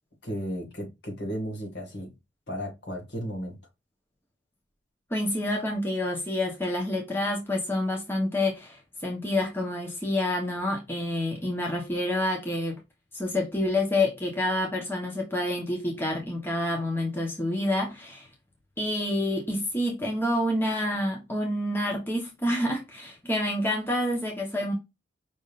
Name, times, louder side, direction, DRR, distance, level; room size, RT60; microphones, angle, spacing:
voice 1, 0.2-2.1 2.5-3.6, equal, 60° left, 1.9 m, -34 dB
voice 2, 5.1-12.8 13.1-18.3 18.8-24.7, left 1 dB, 10° left, 1.0 m, -28 dB
5.4 x 3.6 x 2.4 m
head